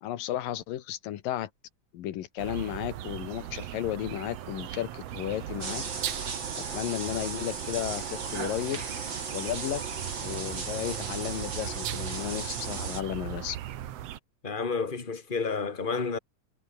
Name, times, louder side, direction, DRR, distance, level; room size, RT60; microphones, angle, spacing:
voice 1, 0.0-1.5 1.9-5.8 6.1-8.8 9.3-9.8 10.2-13.6, left 12 dB, 90° left, 3.1 m, -34 dB
sound 1, 2.4-14.2, right 12 dB, 65° right, 1.7 m, -38 dB
sound 2, 5.3-12.2, left 5 dB, 65° left, 6.1 m, -53 dB
sound 3, 5.6-13.0, right 5 dB, 35° right, 3.6 m, -36 dB
voice 2, 14.4-16.2, left 4 dB, 15° left, 2.1 m, -30 dB
omnidirectional pair, 3.9 m